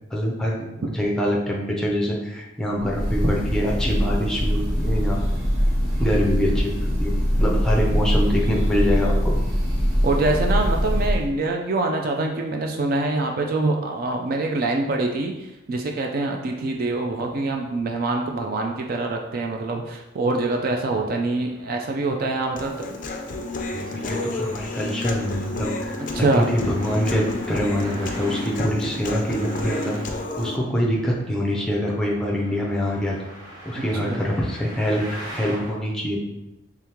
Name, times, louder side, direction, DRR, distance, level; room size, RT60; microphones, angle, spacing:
voice 1, 0.1-5.2 6.0-6.7 7.0-9.3 23.7-30.0 30.4-33.2 33.6-36.2, equal, 5° left, -4 dB, 0.6 m, -25 dB
Breathing / Bird, 2.8-11.3, equal, 20° right, 1.1 m, -22 dB
voice 2, 10.0-22.9 26.1-26.5 33.8-34.2, right 2 dB, 45° right, 2 dB, 0.3 m, -25 dB
Traffic noise roadway noise, 21.3-35.7, right 1 dB, 80° right, 1.4 m, -42 dB
Human voice, 22.6-30.6, left 2 dB, 40° left, 0.4 m, -31 dB
3.5 x 3.5 x 2.9 m, 0.96 s
head